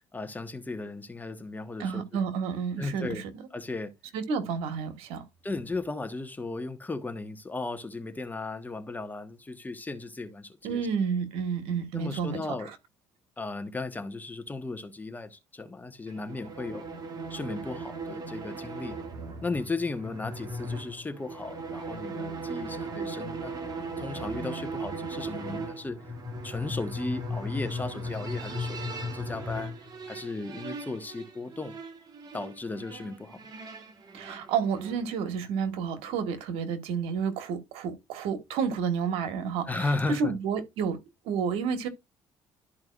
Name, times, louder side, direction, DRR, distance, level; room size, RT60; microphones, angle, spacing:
voice 1, 0.1-2.0 2.8-3.2 3.5-3.9 5.4-10.8 11.9-12.7 13.4-16.8 17.3-19.0 19.4-26.0 26.4-29.7 30.1-31.8 32.3-33.4 39.7-40.3, left 3 dB, 20° left, 1.3 m, -36 dB
voice 2, 1.8-3.4 4.1-5.2 10.6-12.7 34.1-41.0 41.2-41.9, right 6 dB, 85° right, 1.5 m, -30 dB
sound 1, 16.1-35.1, right 1 dB, 45° right, 2.2 m, -37 dB
12.5 x 4.7 x 2.5 m
cardioid pair, 90°, 10 cm